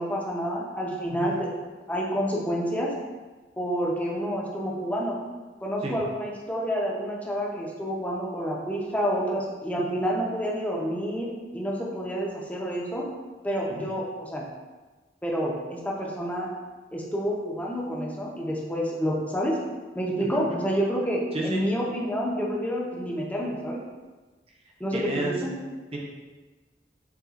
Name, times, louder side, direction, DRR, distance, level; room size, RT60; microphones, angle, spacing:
voice 1, 0.0-1.5 1.9-2.9 3.6-5.2 5.6-11.3 11.5-13.1 13.4-14.4 15.2-16.5 16.9-19.6 19.9-23.8 24.8-25.5, equal, 10° left, -3 dB, 0.6 m, -28 dB
voice 2, 21.3-21.6 24.9-25.3 25.9-26.0, right 2 dB, 35° right, -2 dB, 0.7 m, -31 dB
6.8 x 2.3 x 2.4 m, 1.3 s
head